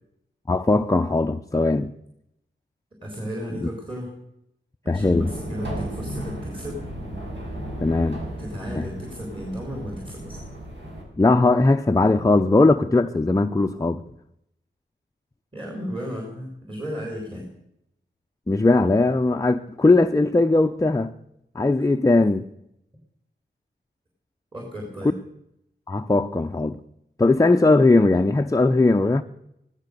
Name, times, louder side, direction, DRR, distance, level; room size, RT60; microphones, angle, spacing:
voice 1, 0.5-1.9 3.6-3.7 4.9-5.3 7.8-8.2 8.8-8.9 11.2-14.0 18.5-21.1 21.5-22.5 25.9-26.8 27.2-29.2, left 2 dB, 15° left, 0.6 m, -19 dB
voice 2, 3.0-4.1 4.8-6.8 8.4-10.4 15.5-17.5 21.6-21.7 24.5-25.2, equal, 25° right, 4.2 m, -34 dB
sound 1, 5.0-11.0, right 1 dB, 65° right, 6.6 m, -35 dB
16.0 x 13.0 x 6.7 m
wide cardioid pair, 80°, 20 cm